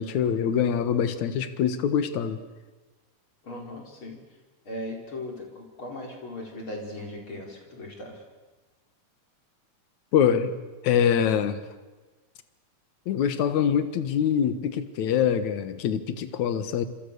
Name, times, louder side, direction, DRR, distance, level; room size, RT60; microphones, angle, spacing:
voice 1, 0.0-2.4 10.1-10.6 10.8-11.6 13.1-16.9, left 8 dB, 70° left, 10 dB, 2.7 m, -24 dB
voice 2, 3.4-4.2 4.6-8.2, left 1 dB, 40° left, 1 dB, 5.1 m, -38 dB
27.0 x 26.5 x 6.9 m, 1.2 s
omnidirectional pair, 3.6 m